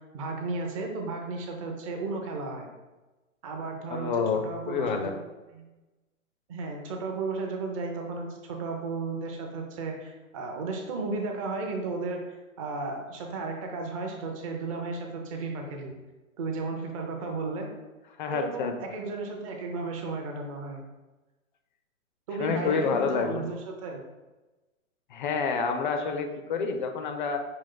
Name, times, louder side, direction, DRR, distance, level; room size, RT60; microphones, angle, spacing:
voice 1, 0.1-2.7 3.4-5.1 5.5-5.6 6.5-15.9 16.4-17.7 18.3-20.8 22.3-24.0, right 3 dB, 25° right, 2 dB, 0.5 m, -34 dB
voice 2, 3.9-5.2 18.2-18.7 22.4-23.5 25.1-27.4, left 5 dB, 35° left, 6 dB, 0.4 m, -28 dB
5.1 x 2.4 x 3.8 m, 1.1 s
hypercardioid pair, 140°, 42 cm